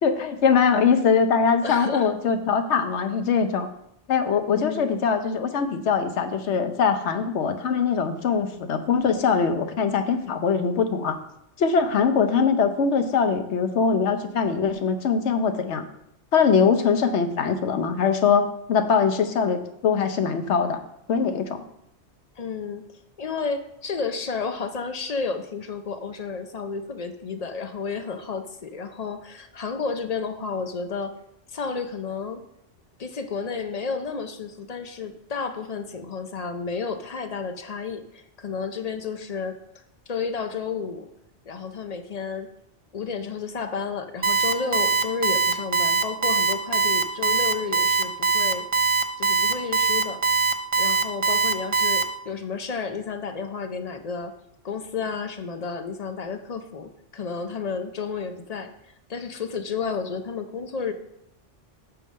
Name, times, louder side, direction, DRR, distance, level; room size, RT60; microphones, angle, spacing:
voice 1, 0.0-3.7 4.1-11.2 11.6-15.8 16.3-20.8 21.1-21.6, left 6 dB, 70° left, 8 dB, 1.1 m, -22 dB
voice 2, 1.6-2.1 4.5-4.9 22.4-22.8 23.2-31.2 31.5-32.4 33.0-39.6 40.1-41.1 41.5-42.5 42.9-48.7 49.2-50.2 50.8-54.3 54.6-58.7 59.1-60.9, left 5 dB, 45° left, 8 dB, 0.6 m, -31 dB
Alarm, 44.2-52.0, right 4 dB, 50° right, 0.4 m, -21 dB
8.7 x 3.7 x 6.3 m, 0.78 s
omnidirectional pair, 1.2 m